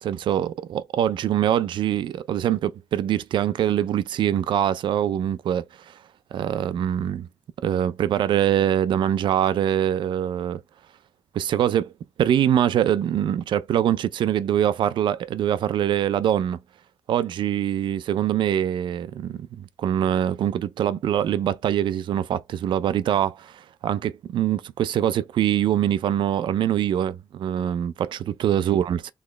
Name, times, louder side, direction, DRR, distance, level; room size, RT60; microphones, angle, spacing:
voice 1, 0.0-5.6 6.3-7.3 7.6-10.6 11.3-11.9 12.2-16.6 17.1-29.1, right 10 dB, 90° right, 0.4 m, -23 dB
4.1 x 3.0 x 3.2 m
wide cardioid pair, 120°, 8 cm